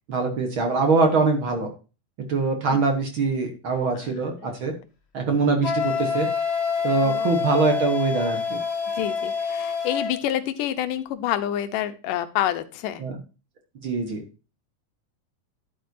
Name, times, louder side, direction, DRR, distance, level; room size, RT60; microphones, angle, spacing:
voice 1, 0.1-1.7 2.3-4.7 5.1-6.3 6.8-8.6 13.0-13.1 13.8-14.2, right 4 dB, 55° right, 4 dB, 1.6 m, -23 dB
voice 2, 3.9-4.6 7.0-7.3 9.0-13.0, left 11 dB, 90° left, 10 dB, 2.5 m, -28 dB
Wind instrument woodwind instrument, 5.6-10.2, left 5 dB, 35° left, 1.1 m, -26 dB
11.0 x 8.7 x 2.7 m, 0.32 s
omnidirectional pair, 3.6 m